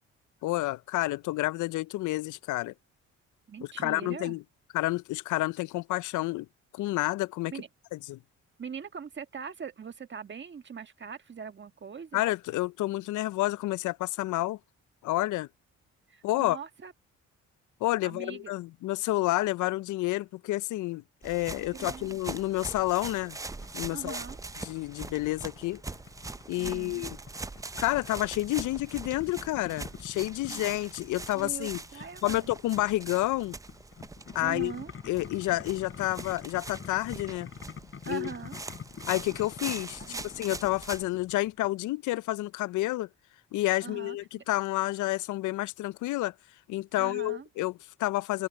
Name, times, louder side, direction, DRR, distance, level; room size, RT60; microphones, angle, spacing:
voice 1, 0.4-2.7 3.8-4.4 4.7-6.5 6.7-7.5 7.9-8.2 12.1-14.6 15.0-15.5 16.2-16.6 17.8-23.4 23.7-24.2 24.6-25.8 26.5-27.2 27.8-31.8 32.2-33.6 34.3-34.7 35.1-37.5 38.1-38.3 39.1-43.1 43.5-46.3 46.7-48.5, left 17 dB, 80° left, 0.5 m, -29 dB
voice 2, 3.5-4.3 7.5-7.7 8.6-12.2 16.1-16.9 18.0-18.5 21.7-22.2 23.9-24.4 26.6-27.1 30.5-30.6 31.3-32.5 34.4-34.9 38.0-38.6 40.0-40.3 43.8-44.4 47.0-47.5, right 6 dB, 40° right, 1.5 m, -41 dB
sound 1, 21.2-41.0, right 3 dB, 10° right, 0.5 m, -42 dB
Boiling, 23.6-41.7, left 6 dB, 45° left, 6.1 m, -47 dB
open air
cardioid pair, 90°, 30 cm